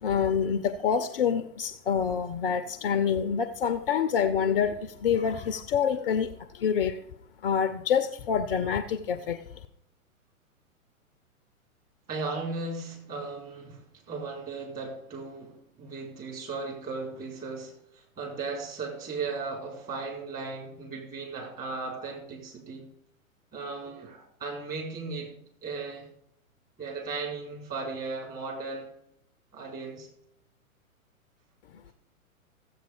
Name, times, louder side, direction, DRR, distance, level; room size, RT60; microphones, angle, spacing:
voice 1, 0.0-7.0 7.4-9.4, left 7 dB, 40° left, 12 dB, 0.7 m, -27 dB
voice 2, 12.1-22.9 23.5-25.3 25.6-26.1 26.8-28.9 29.5-30.1, right 4 dB, 20° right, -2 dB, 4.4 m, -36 dB
14.5 x 8.0 x 5.1 m, 0.73 s
figure-of-eight pair, 115°, 42 cm